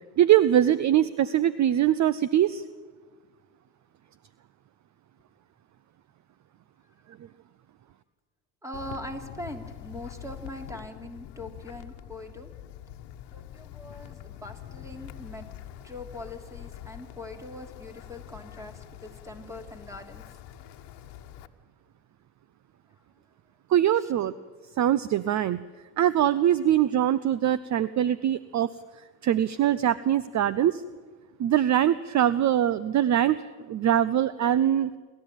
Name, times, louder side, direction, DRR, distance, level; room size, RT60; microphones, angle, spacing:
voice 1, 0.2-2.6 23.7-24.3 24.8-25.6 26.0-28.7 29.2-30.8 31.4-33.4 33.7-34.9, right 11 dB, 40° right, 17 dB, 0.7 m, -22 dB
voice 2, 8.6-12.5 13.3-15.5 15.8-20.2 24.0-24.1, left 1 dB, 5° right, 6 dB, 2.9 m, -42 dB
Wind, 8.7-21.5, left 12 dB, 60° left, 1.4 m, -44 dB
27.5 x 12.5 x 9.0 m, 1.5 s
supercardioid pair, 90°, 45 cm